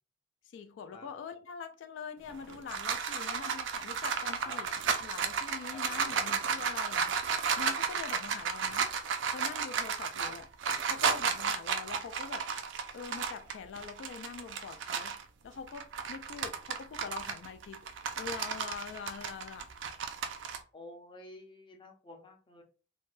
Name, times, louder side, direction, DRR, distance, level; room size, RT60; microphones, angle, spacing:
voice 1, 0.4-8.9 9.3-10.5 10.9-12.5 12.9-19.7, left 6 dB, 70° left, 0.3 m, -44 dB
sound 1, 2.3-15.2 15.7-20.6, right 6 dB, 70° right, 0.4 m, -33 dB
voice 2, 5.7-6.1 8.3-8.4 10.2-10.4 20.7-22.6, left 2 dB, 25° left, 0.6 m, -50 dB
3.3 x 2.1 x 2.5 m
head